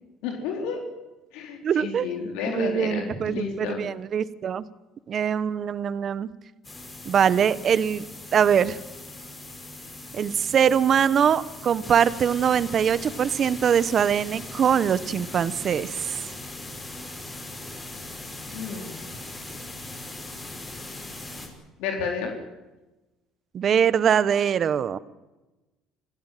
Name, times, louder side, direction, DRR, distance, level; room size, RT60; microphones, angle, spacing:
voice 1, 0.2-0.8 1.3-3.8 18.5-19.0 21.8-22.4, left 6 dB, 80° left, 2 dB, 3.9 m, -31 dB
voice 2, 1.6-2.1 2.5-4.6 5.1-6.3 7.0-8.0 8.3-8.8 10.1-16.2 23.5-25.0, right 8 dB, 40° right, 16 dB, 1.1 m, -23 dB
sound 1, 6.6-21.5, left 2 dB, 15° left, 6.4 m, -40 dB
27.0 x 16.0 x 9.2 m, 1.1 s
cardioid pair, 130°, 0 cm